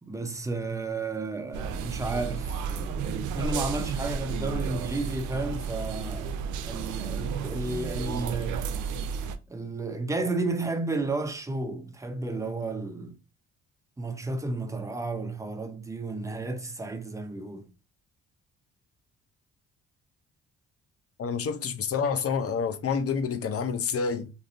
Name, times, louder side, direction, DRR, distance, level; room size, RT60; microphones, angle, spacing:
voice 1, 0.0-6.3 6.7-8.8 9.5-13.2 14.0-17.7, right 2 dB, 10° right, 0.5 m, -32 dB
sound 1, 1.5-9.4, right 6 dB, 80° right, 0.5 m, -32 dB
voice 2, 21.2-24.3, left 6 dB, 50° left, 0.6 m, -28 dB
3.8 x 2.5 x 2.4 m
cardioid pair, 90°, 30 cm